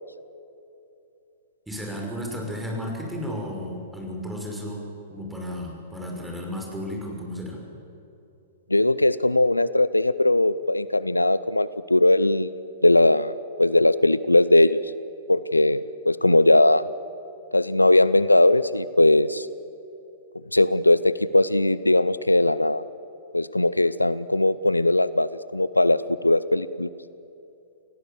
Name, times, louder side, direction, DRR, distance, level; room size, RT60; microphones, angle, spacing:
voice 1, 1.7-4.9 5.1-7.6, equal, 5° right, 0 dB, 5.9 m, -33 dB
voice 2, 8.7-12.5 12.8-14.9 15.3-16.9 17.5-19.5 20.5-22.8 23.3-26.9, left 2 dB, 90° left, 17 dB, 0.6 m, -20 dB
28.0 x 17.5 x 7.2 m, 2.8 s
figure-of-eight pair, 105°, 0 cm